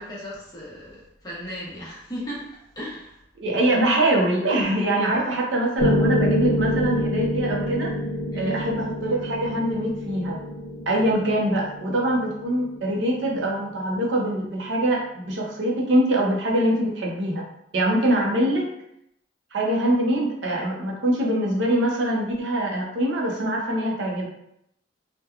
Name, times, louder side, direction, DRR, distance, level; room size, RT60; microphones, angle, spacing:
voice 1, 0.0-2.5 2.8-3.2 5.0-5.2 8.3-8.6 18.4-18.5, equal, 20° left, -7 dB, 0.8 m, -36 dB
voice 2, 3.4-7.9 8.3-10.4 10.9-17.4 17.7-18.7 19.5-24.3, right 1 dB, 70° right, -1 dB, 0.6 m, -23 dB
Piano, 5.8-13.9, equal, 55° left, 0.6 m, -27 dB
2.8 x 2.1 x 2.3 m, 0.77 s
head